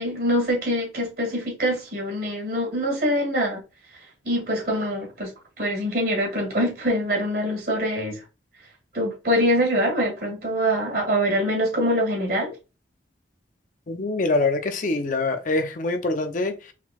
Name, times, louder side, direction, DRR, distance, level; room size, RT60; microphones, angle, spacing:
voice 1, 0.0-3.6 4.2-5.3 5.6-8.2 8.9-12.6, equal, 55° right, 2.3 m, -24 dB
voice 2, 13.9-16.7, left 2 dB, 45° left, 0.6 m, -24 dB
4.4 x 3.8 x 2.3 m
head